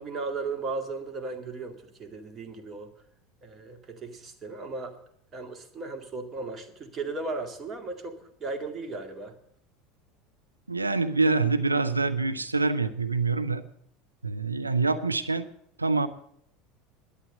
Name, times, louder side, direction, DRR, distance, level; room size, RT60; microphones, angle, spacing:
voice 1, 0.0-2.9 3.4-5.0 5.3-9.3, right 3 dB, 30° right, 5 dB, 2.2 m, -36 dB
voice 2, 10.7-13.6 14.2-15.5 15.8-16.1, right 3 dB, 85° right, 9 dB, 0.6 m, -25 dB
11.5 x 8.4 x 8.2 m, 0.70 s
figure-of-eight pair, 75°, 0 cm